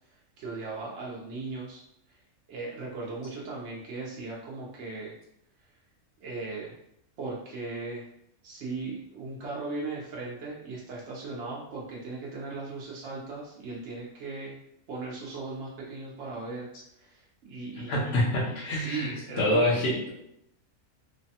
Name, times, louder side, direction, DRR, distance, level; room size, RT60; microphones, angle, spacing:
voice 1, 0.4-1.8 2.1-2.2 2.5-5.2 6.2-6.7 7.2-8.1 8.4-14.5 14.9-16.7 17.0-19.7, right 3 dB, 65° right, -4 dB, 0.8 m, -37 dB
voice 2, 17.9-20.1, left 1 dB, 55° left, -3 dB, 0.8 m, -26 dB
3.1 x 2.1 x 2.7 m, 0.76 s
omnidirectional pair, 1.5 m